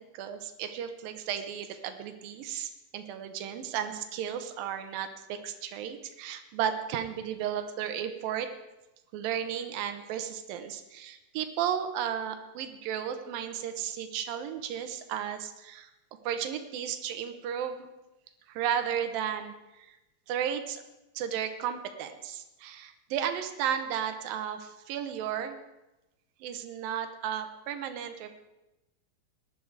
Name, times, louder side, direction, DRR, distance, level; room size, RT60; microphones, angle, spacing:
voice 1, 0.1-8.5 9.1-15.9 16.2-17.9 18.5-20.0 20.3-20.8 21.2-25.6 26.4-28.3, right 9 dB, 90° right, 8 dB, 2.7 m, -34 dB
18.5 x 11.5 x 4.8 m, 1.0 s
omnidirectional pair, 4.0 m